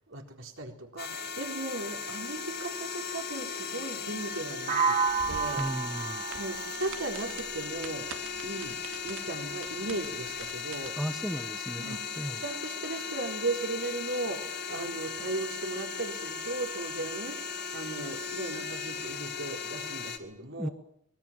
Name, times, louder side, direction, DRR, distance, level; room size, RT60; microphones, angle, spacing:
voice 1, 0.1-5.0 5.3-5.6 6.4-8.1 8.4-8.8 9.0-11.0 11.8-12.0 12.4-20.7, right 2 dB, 65° right, 2 dB, 4.1 m, -37 dB
sound 1, 1.0-20.2, left 5 dB, 50° left, 2.1 m, -37 dB
sound 2, 4.7-8.6, right 5 dB, 40° right, 2.0 m, -32 dB
sound 3, 5.1-10.9, right 5 dB, 85° right, 2.6 m, -47 dB
voice 2, 5.6-6.2 11.0-12.4 20.6-20.7, equal, ahead, 8 dB, 1.0 m, -35 dB
24.0 x 21.5 x 7.5 m, 0.69 s
head